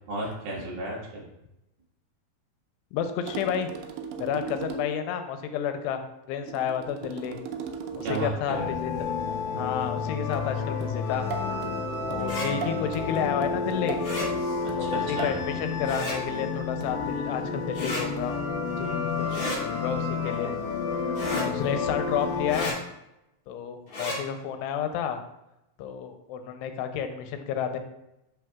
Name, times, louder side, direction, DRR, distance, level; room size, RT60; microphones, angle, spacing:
voice 1, 0.1-1.3 7.9-8.7 14.6-15.4, right 1 dB, 70° right, -4 dB, 3.5 m, -34 dB
voice 2, 2.9-3.7 4.2-6.0 6.3-7.4 8.0-9.1 9.6-11.3 12.1-14.0 14.8-18.4 18.8-20.5 21.3-22.8 23.5-25.2 25.8-27.8, left 8 dB, 90° left, 7 dB, 2.7 m, -31 dB
sound 1, 3.3-5.1 6.5-8.5 10.3-15.5 16.8-17.2 18.2-18.5, right 6 dB, 85° right, 2.8 m, -38 dB
sound 2, 8.5-22.7, left 5 dB, 65° left, 1.9 m, -30 dB
sound 3, 12.2-12.5 14.0-14.3 15.8-16.2 17.7-18.0 19.3-19.6 21.1-21.5 22.5-22.7 23.9-24.2, left 1 dB, 40° left, 3.1 m, -32 dB
8.6 x 6.2 x 2.4 m, 0.90 s
omnidirectional pair, 4.7 m